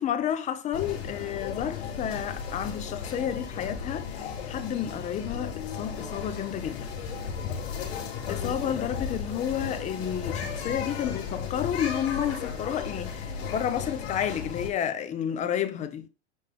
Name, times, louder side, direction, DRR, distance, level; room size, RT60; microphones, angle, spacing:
voice 1, 0.0-6.9 8.3-16.1, left 9 dB, 20° left, 0.8 m, -31 dB
sound 1, 0.7-14.7, left 6 dB, 65° left, 4.2 m, -35 dB
10.5 x 3.5 x 3.6 m
supercardioid pair, 145°, 34 cm